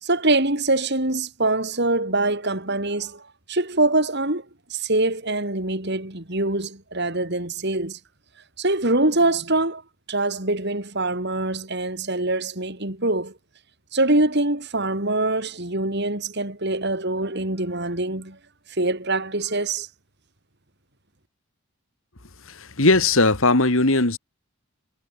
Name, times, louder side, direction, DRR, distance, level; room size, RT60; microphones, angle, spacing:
voice 1, 0.0-3.2 3.5-4.4 4.7-8.0 8.6-9.8 10.1-13.3 13.9-18.4 18.8-19.9, right 2 dB, 50° right, 3.4 m, -24 dB
voice 2, 22.5-24.2, left 2 dB, 65° left, 2.5 m, -19 dB
head